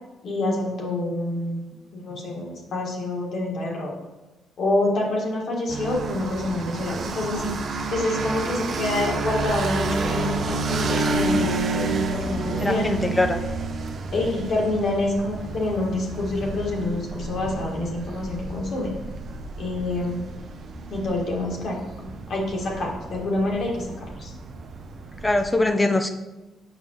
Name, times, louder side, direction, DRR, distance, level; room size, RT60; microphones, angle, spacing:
voice 1, 0.2-1.6 1.9-3.9 4.6-7.5 7.9-12.9 14.1-18.9 19.6-20.3 20.9-24.3, left 2 dB, 65° left, -2 dB, 1.7 m, -27 dB
sound 1, 5.7-25.5, right 3 dB, 60° right, 0.7 m, -30 dB
voice 2, 12.6-13.4 25.2-26.1, left 2 dB, 20° left, 6 dB, 0.6 m, -22 dB
6.9 x 5.5 x 3.1 m, 1.1 s
supercardioid pair, 55°, 0 cm